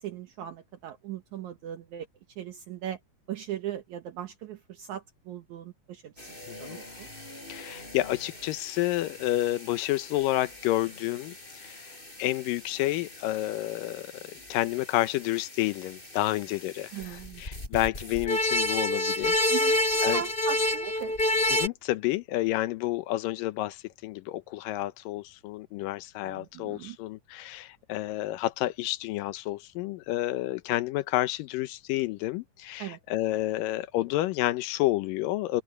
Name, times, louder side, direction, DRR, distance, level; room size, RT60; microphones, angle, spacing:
voice 1, 0.0-2.1 2.4-3.0 3.3-7.1 16.9-17.4 19.5-21.2 26.2-27.0 32.8-33.0, right 11 dB, 70° right, 2.3 m, -39 dB
sound 1, 6.2-14.4 14.8-15.1 15.3-15.4 15.7-16.1 16.4-21.7, left 1 dB, 15° left, 4.7 m, -30 dB
voice 2, 6.5-6.8 7.5-14.1 14.5-19.4 20.0-20.2 21.5-35.6, left 16 dB, 90° left, 2.5 m, -30 dB
open air
omnidirectional pair, 3.8 m